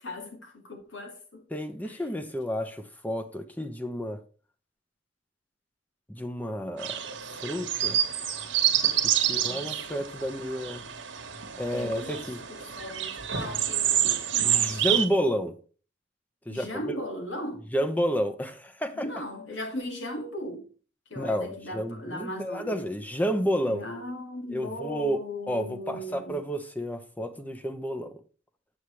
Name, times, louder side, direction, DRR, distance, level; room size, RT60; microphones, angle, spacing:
voice 1, 0.0-1.4 1.8-2.0 9.2-10.0 11.7-14.9 16.5-17.7 18.9-20.7 21.1-22.8 23.5-26.4, left 1 dB, 85° left, 2.0 m, -38 dB
voice 2, 1.5-4.2 6.1-7.0 7.3-8.0 9.0-10.9 11.6-12.5 14.4-15.6 16.5-17.0 17.7-19.1 21.2-23.9 24.5-28.2, equal, 10° left, 0.7 m, -31 dB
sound 1, 6.8-15.1, right 10 dB, 85° right, 1.2 m, -28 dB
8.0 x 7.0 x 3.2 m
head